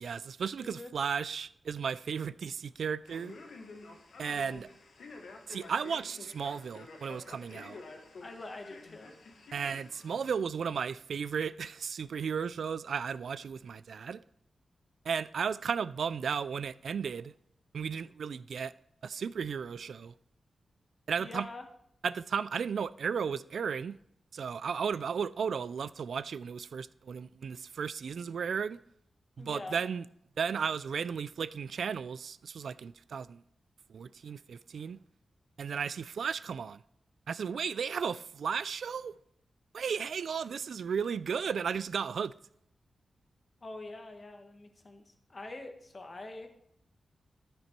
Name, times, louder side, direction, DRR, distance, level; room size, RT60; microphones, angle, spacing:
voice 1, 0.0-3.4 4.2-4.7 5.5-7.8 9.5-14.2 15.1-17.3 17.7-18.7 19.0-20.1 21.1-21.5 22.0-24.0 24.3-28.8 29.4-30.0 30.4-33.4 33.9-35.0 35.6-36.8 37.3-39.1 39.7-42.3, right 6 dB, 75° right, 0.3 m, -34 dB
voice 2, 0.6-0.9 8.2-9.1 21.2-21.6 29.4-29.8 43.6-46.5, left 2 dB, 35° left, 1.3 m, -45 dB
Male speech man speaking, 3.0-10.4, left 3 dB, 85° left, 1.6 m, -50 dB
13.0 x 6.0 x 4.5 m
wide cardioid pair, 135°, 0 cm